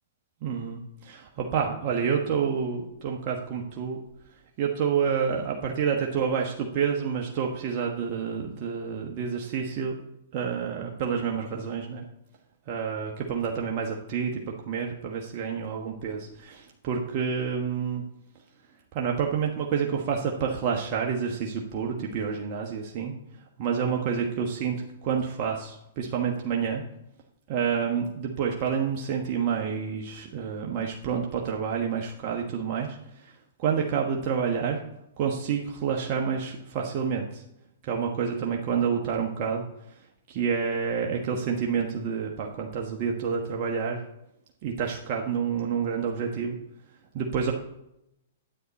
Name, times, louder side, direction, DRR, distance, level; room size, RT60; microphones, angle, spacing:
voice 1, 0.4-4.0 4.6-10.0 10.3-12.0 12.7-18.0 18.9-23.1 23.6-24.8 25.0-26.8 27.5-33.3 33.6-34.8 35.2-37.4 37.8-40.0 40.3-44.0 44.6-46.6 47.1-47.5, right 6 dB, 45° right, 0 dB, 1.2 m, -28 dB
10.0 x 8.2 x 4.1 m, 0.84 s
hypercardioid pair, 130°, 0 cm